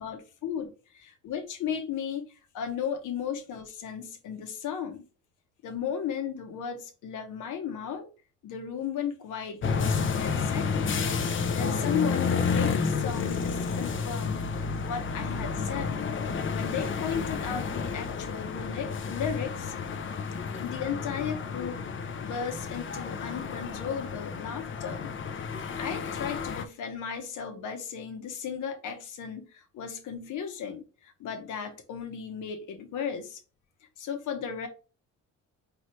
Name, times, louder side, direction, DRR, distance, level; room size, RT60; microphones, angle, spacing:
voice 1, 0.0-5.0 5.6-8.1 8.4-11.0 11.5-14.4 14.8-16.0 16.5-19.7 20.6-25.1 25.4-33.4 34.0-34.7, left 7 dB, 80° left, 1.3 m, -35 dB
sound 1, 9.6-26.6, left 5 dB, 40° left, 0.7 m, -31 dB
4.8 x 3.1 x 3.1 m
cardioid pair, 90°, 30 cm